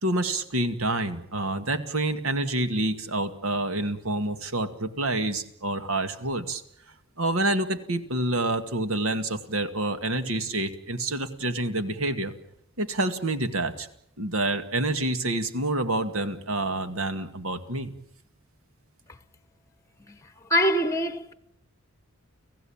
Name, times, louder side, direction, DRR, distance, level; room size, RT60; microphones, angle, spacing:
voice 1, 0.0-6.6 7.2-12.3 12.8-13.9 14.2-17.9, right 2 dB, 70° right, 2.1 m, -28 dB
voice 2, 20.5-21.3, equal, 15° left, 1.1 m, -23 dB
30.0 x 16.5 x 8.8 m
head